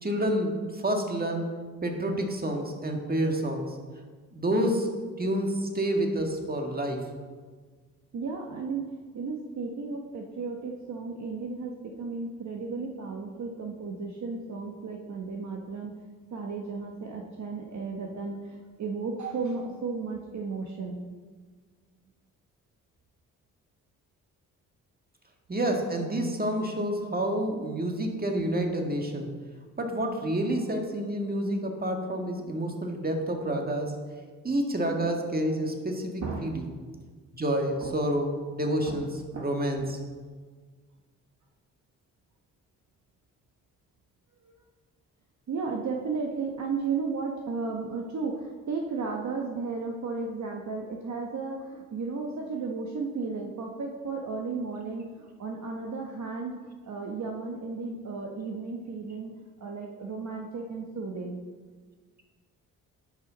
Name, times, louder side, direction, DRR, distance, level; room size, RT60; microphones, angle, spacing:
voice 1, 0.0-1.6 1.8-3.8 4.3-7.1 25.5-29.3 29.8-34.0 34.4-36.6 37.3-39.1 39.4-40.0, right 1 dB, 25° right, 3 dB, 1.8 m, -29 dB
voice 2, 8.1-8.9 9.1-15.9 16.3-21.0 36.2-36.6 37.8-38.0 38.6-39.0 39.3-39.5 39.8-39.9 44.4-44.5 45.5-56.6 56.8-59.3 59.6-61.4, right 4 dB, 50° right, 1 dB, 1.1 m, -34 dB
10.0 x 6.0 x 4.0 m, 1.5 s
supercardioid pair, 50°, 37 cm